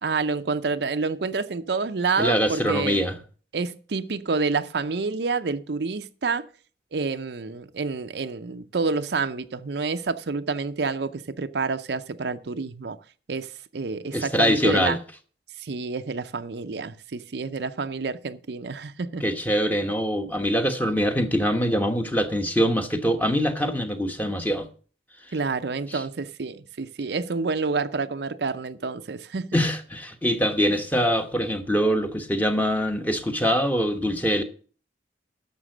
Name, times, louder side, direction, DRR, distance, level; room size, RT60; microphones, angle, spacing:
voice 1, 0.0-3.0 3.5-6.5 6.9-13.0 13.3-15.0 15.6-19.2 25.3-29.6, right 4 dB, 60° right, 0.6 m, -28 dB
voice 2, 2.2-3.1 14.1-15.0 19.2-24.7 25.9-26.0 29.5-34.4, equal, 10° left, 1.1 m, -23 dB
11.0 x 6.9 x 6.5 m
head